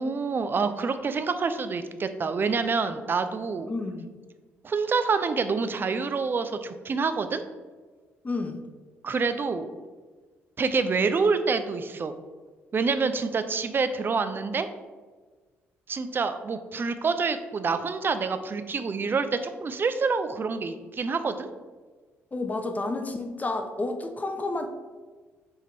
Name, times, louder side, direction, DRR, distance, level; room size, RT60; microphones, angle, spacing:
voice 1, 0.0-3.7 4.6-7.4 9.0-9.7 10.6-12.2 12.7-14.7 15.9-21.5, right 4 dB, 30° right, 10 dB, 0.4 m, -27 dB
voice 2, 3.7-4.1 8.2-8.6 22.3-24.7, left 2 dB, 25° left, 6 dB, 0.5 m, -30 dB
3.6 x 3.5 x 4.2 m, 1.4 s
figure-of-eight pair, 45°, 7 cm